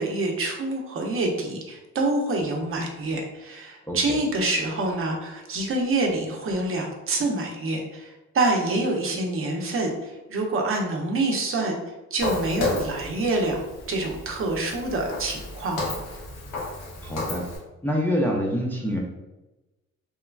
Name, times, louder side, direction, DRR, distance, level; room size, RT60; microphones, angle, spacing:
voice 1, 0.0-11.8 12.1-13.6 13.9-15.9, right 2 dB, 45° right, 1 dB, 0.6 m, -26 dB
Walk footsteps, 12.2-17.6, left 3 dB, 85° left, 0.8 m, -32 dB
voice 2, 17.0-17.4 17.8-19.0, equal, 5° left, -2 dB, 0.4 m, -26 dB
3.0 x 2.2 x 2.3 m, 1.1 s
cardioid pair, 90°, 30 cm